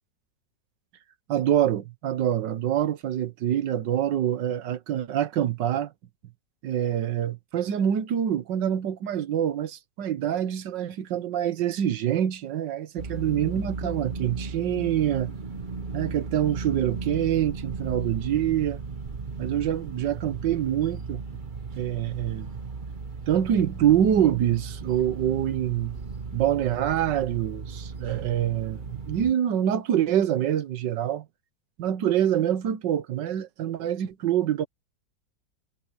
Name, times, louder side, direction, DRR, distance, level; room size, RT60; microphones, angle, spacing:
voice 1, 1.3-5.9 6.6-15.3 15.9-18.8 19.4-21.2 21.8-22.5 23.3-25.9 26.3-31.2 31.8-34.7, right 10 dB, 90° right, 1.7 m, -25 dB
sound 1, 13.0-29.3, right 4 dB, 30° right, 1.2 m, -36 dB
omnidirectional pair, 1.9 m